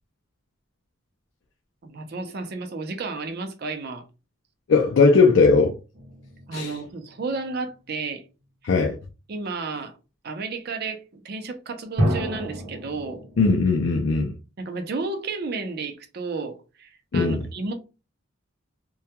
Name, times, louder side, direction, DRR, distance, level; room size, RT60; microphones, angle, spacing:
voice 1, 1.8-4.1 6.5-8.2 9.3-9.9 10.2-13.2 14.6-17.7, right 3 dB, 50° right, 0.5 m, -32 dB
voice 2, 4.7-5.7 6.5-6.8 8.6-9.0 13.4-14.3 17.1-17.4, left 4 dB, 60° left, 0.4 m, -18 dB
sound 1, 5.9-7.3 12.0-13.8, equal, 85° right, 0.8 m, -29 dB
2.2 x 2.2 x 2.8 m
head